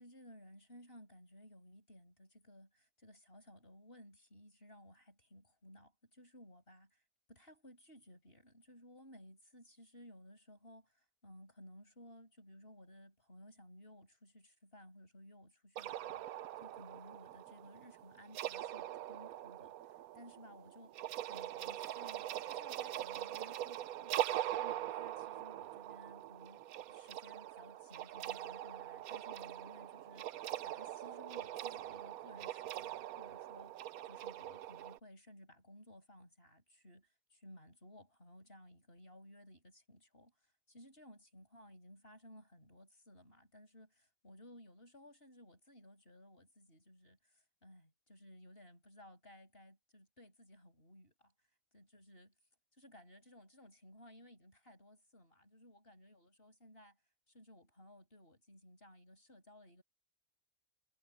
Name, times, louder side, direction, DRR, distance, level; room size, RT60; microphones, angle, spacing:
voice 1, 0.0-7.0 7.3-16.3 16.6-24.2 24.6-40.4 40.7-51.3 51.7-52.3 52.8-57.0 57.3-59.8, equal, 40° left, 7.0 m, -58 dB
sound 1, 15.8-35.0, right 12 dB, 90° right, 1.1 m, -42 dB
omnidirectional pair, 1.5 m